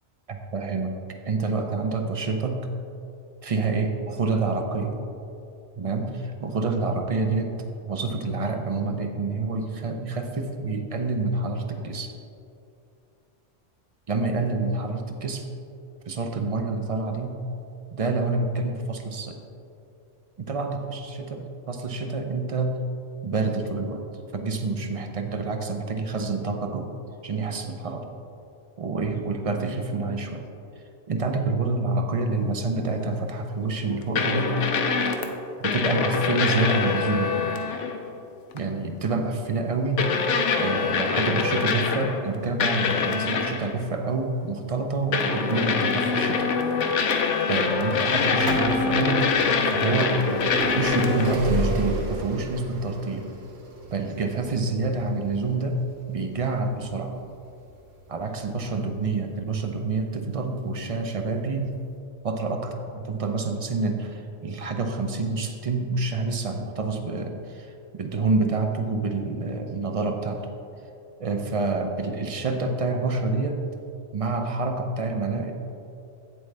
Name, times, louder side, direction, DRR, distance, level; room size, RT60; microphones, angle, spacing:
voice 1, 0.3-1.0 1.2-2.7 3.4-5.0 5.8-7.6 7.8-12.2 14.1-15.5 16.1-17.4 17.9-19.4 20.4-22.8 23.2-24.1 24.3-26.9 27.2-28.1 28.8-30.5 31.1-34.6 35.6-37.4 38.5-40.1 40.6-46.5 47.5-49.2 49.7-50.2 50.6-53.3 53.9-55.8 56.1-57.2 58.1-61.7 62.2-70.5 71.2-73.6 74.1-75.5, right 3 dB, 45° right, 5 dB, 0.4 m, -27 dB
sound 1, 34.2-35.3 35.6-38.0 38.5-38.7 40.0-42.3 42.6-43.7 45.1-51.4, left 5 dB, 75° left, 1.0 m, -24 dB
sound 2, 48.1-59.8 60.6-60.7 61.7-61.8 61.9-62.0, right 1 dB, 65° right, 1.2 m, -32 dB
8.2 x 7.7 x 3.3 m, 2.7 s
omnidirectional pair, 1.2 m